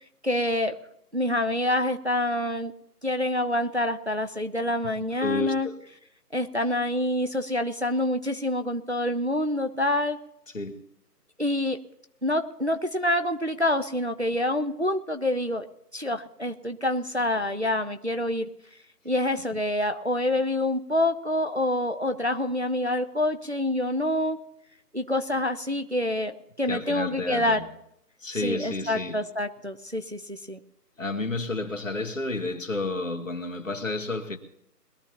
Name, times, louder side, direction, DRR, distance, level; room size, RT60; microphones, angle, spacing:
voice 1, 0.2-0.8 1.1-2.7 3.0-5.7 6.3-10.2 11.4-11.8 12.2-15.7 15.9-18.5 19.0-24.4 24.9-27.6 28.4-30.6, left 1 dB, 45° right, 0.5 m, -26 dB
voice 2, 5.2-5.8 10.5-10.9 26.7-27.7 28.2-29.3 31.0-34.4, left 2 dB, 50° left, 1.4 m, -31 dB
21.5 x 12.5 x 2.9 m
figure-of-eight pair, 180°, 49 cm